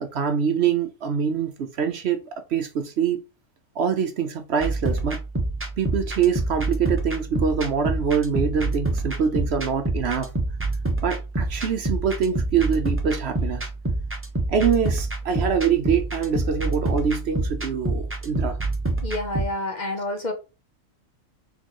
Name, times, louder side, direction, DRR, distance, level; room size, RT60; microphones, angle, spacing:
voice 1, 0.0-3.2 3.8-5.2 5.8-10.3 11.0-13.7 14.5-18.6, right 7 dB, 60° right, 0.8 m, -24 dB
sound 1, 4.6-19.4, right 2 dB, 10° right, 0.7 m, -27 dB
voice 2, 19.0-20.3, left 1 dB, 40° left, 0.8 m, -28 dB
4.3 x 3.9 x 3.0 m
omnidirectional pair, 1.4 m